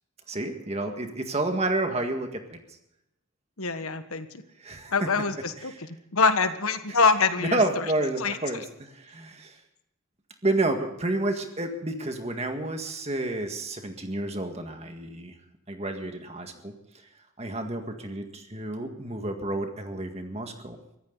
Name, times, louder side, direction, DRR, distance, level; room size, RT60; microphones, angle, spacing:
voice 1, 0.3-2.8 4.6-5.1 5.6-5.8 6.9-7.0 7.4-9.6 10.4-15.3 15.7-16.7 17.4-20.8, right 2 dB, 30° right, 5 dB, 1.9 m, -30 dB
voice 2, 3.6-4.4 4.9-5.7 6.1-7.8 8.2-8.4, left 4 dB, 85° left, 9 dB, 1.4 m, -24 dB
23.5 x 15.0 x 4.0 m, 0.84 s
head